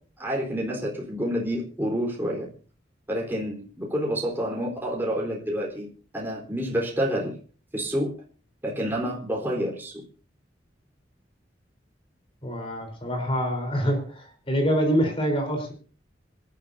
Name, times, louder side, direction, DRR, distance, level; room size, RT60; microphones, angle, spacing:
voice 1, 0.2-2.5 3.1-5.9 6.1-7.3 7.7-8.1 8.6-10.0, equal, 10° right, -2 dB, 4.0 m, -28 dB
voice 2, 12.4-15.7, equal, 30° left, 3 dB, 4.0 m, -25 dB
26.5 x 12.0 x 2.8 m, 0.40 s
head